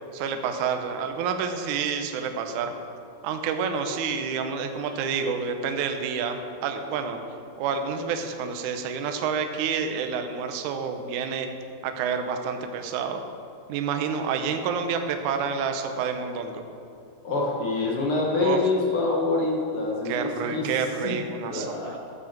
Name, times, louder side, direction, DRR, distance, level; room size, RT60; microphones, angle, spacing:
voice 1, 0.1-2.7 3.2-7.2 7.6-11.5 11.8-13.2 13.7-16.6 18.4-18.6 20.0-21.9, right 6 dB, 80° right, 6 dB, 1.8 m, -28 dB
voice 2, 17.2-20.7 21.0-21.2 21.5-22.0, left 3 dB, 55° left, -2 dB, 1.6 m, -26 dB
14.0 x 6.2 x 7.3 m, 2.6 s
omnidirectional pair, 4.6 m